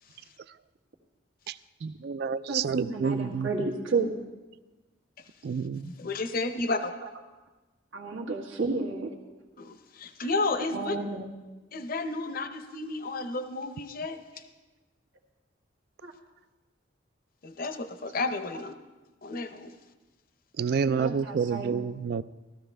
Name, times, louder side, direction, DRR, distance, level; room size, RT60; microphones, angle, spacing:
voice 1, 1.8-3.5 5.4-5.9 20.6-22.2, right 6 dB, 55° right, 16 dB, 0.3 m, -29 dB
voice 2, 2.5-4.1 7.9-9.1 10.5-11.3 14.3-14.4 16.0-16.1 20.9-21.8, right 3 dB, 85° right, 0 dB, 1.6 m, -31 dB
voice 3, 5.7-6.9 9.6-11.0 11.7-14.2 17.4-18.8 19.2-19.7, left 3 dB, 50° left, 9 dB, 0.6 m, -32 dB
16.0 x 13.0 x 3.3 m, 1.2 s
head